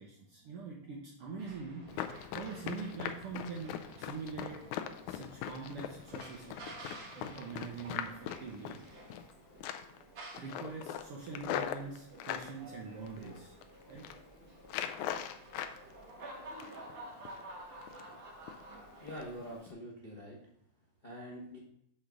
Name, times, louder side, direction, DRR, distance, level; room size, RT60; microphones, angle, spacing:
voice 1, 0.0-4.6 5.1-9.1 10.4-13.5 13.9-14.0, right 5 dB, 65° right, -2 dB, 1.5 m, -44 dB
sound 1, 1.4-19.6, right 1 dB, 50° right, 1.8 m, -52 dB
Run, 1.9-9.3 9.6-10.0 10.3-12.5 13.1-13.6 13.9-14.2 14.7-15.8 16.1-16.9 17.3-17.4 17.8-18.2 18.5-18.6 19.1-19.2 19.6-19.7, left 10 dB, 90° left, 2.0 m, -40 dB
voice 2, 19.0-20.4 21.0-21.6, equal, 65° left, -5 dB, 0.4 m, -45 dB
6.6 x 3.9 x 5.9 m, 0.73 s
omnidirectional pair, 3.3 m